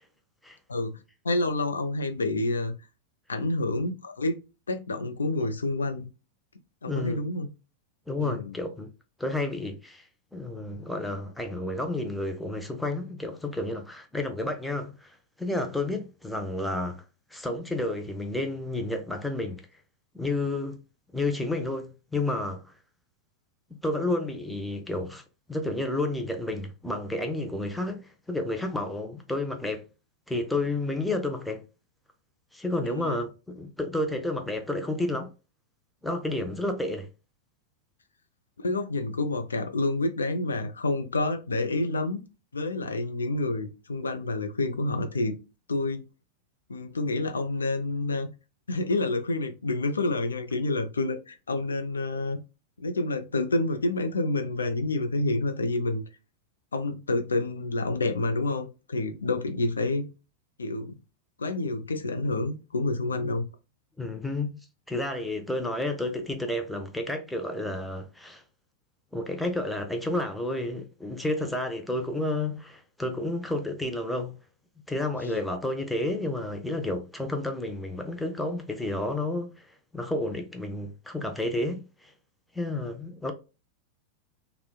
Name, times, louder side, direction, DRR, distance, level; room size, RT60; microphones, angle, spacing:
voice 1, 0.7-1.0 1.2-2.8 3.3-4.4 4.7-6.1 6.8-7.5 8.2-8.5 32.8-33.2 38.6-42.2 42.5-45.4 45.7-46.1 46.7-48.3 48.7-52.4 52.8-56.0 56.7-60.1 60.6-60.9 61.4-63.4, left 2 dB, 75° left, 0.4 m, -28 dB
voice 2, 6.9-7.2 8.1-8.9 9.2-10.1 10.3-17.0 17.3-19.6 20.1-20.8 21.1-22.6 23.8-25.2 25.5-29.8 30.3-31.6 32.5-35.3 36.0-37.1 64.0-68.4 69.1-74.4 74.9-79.7 79.9-82.1 82.5-83.3, left 2 dB, 5° left, 0.5 m, -31 dB
2.8 x 2.1 x 2.2 m
figure-of-eight pair, 90°, 0 cm